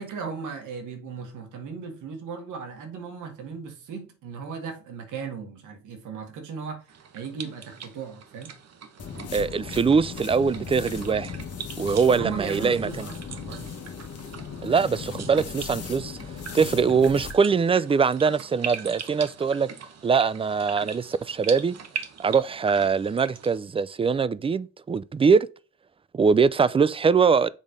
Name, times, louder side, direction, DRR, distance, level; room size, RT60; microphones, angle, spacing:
voice 1, 0.0-8.5 12.1-13.6, right 5 dB, 85° right, 1.9 m, -37 dB
sound 1, 6.9-23.6, right 7 dB, 55° right, 1.2 m, -41 dB
sound 2, 9.0-17.4, left 6 dB, 55° left, 1.3 m, -37 dB
voice 2, 9.3-11.3 11.8-13.1 14.6-16.2 16.5-19.7 20.0-21.8 22.2-25.5 26.1-27.5, right 5 dB, 20° right, 0.3 m, -22 dB
7.3 x 3.3 x 5.3 m
cardioid pair, 90°, 30 cm